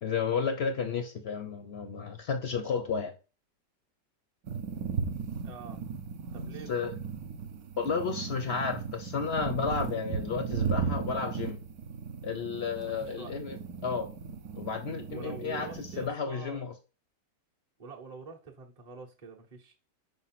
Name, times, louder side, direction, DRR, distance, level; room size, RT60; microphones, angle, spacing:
voice 1, 0.0-3.1 6.7-6.9 7.8-11.6 12.2-13.6 13.8-14.1 14.5-16.7, left 5 dB, 60° left, 0.6 m, -32 dB
sound 1, 4.4-16.1, right 6 dB, 65° right, 1.2 m, -36 dB
voice 2, 5.4-5.8 6.3-6.9 13.0-13.3 15.1-16.6 17.8-19.7, right 4 dB, 35° right, 0.6 m, -46 dB
4.8 x 3.8 x 5.7 m
omnidirectional pair, 1.9 m